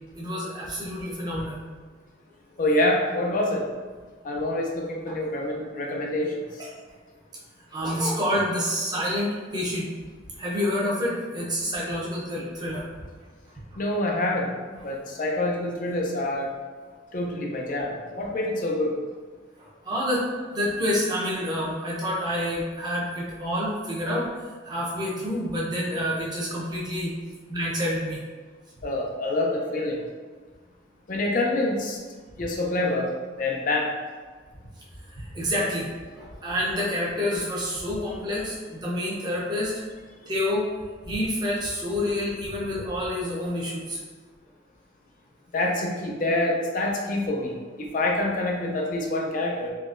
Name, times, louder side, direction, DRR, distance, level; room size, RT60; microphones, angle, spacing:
voice 1, 0.1-1.6 5.1-5.2 6.6-6.7 7.7-9.8 10.4-12.9 13.7-13.8 19.6-20.2 20.5-24.3 24.6-27.1 27.5-28.2 35.1-35.9 36.1-39.7 40.2-40.7 41.0-44.0 48.7-48.9, left 1 dB, 20° right, -5 dB, 0.7 m, -28 dB
voice 2, 2.6-3.6 4.2-6.3 13.8-14.5 14.8-16.5 17.1-18.9 28.8-30.0 31.1-32.0 32.4-33.1 33.4-33.9 45.5-49.7, left 1 dB, 45° left, -1 dB, 0.4 m, -26 dB
3.7 x 3.0 x 2.5 m, 1.5 s
head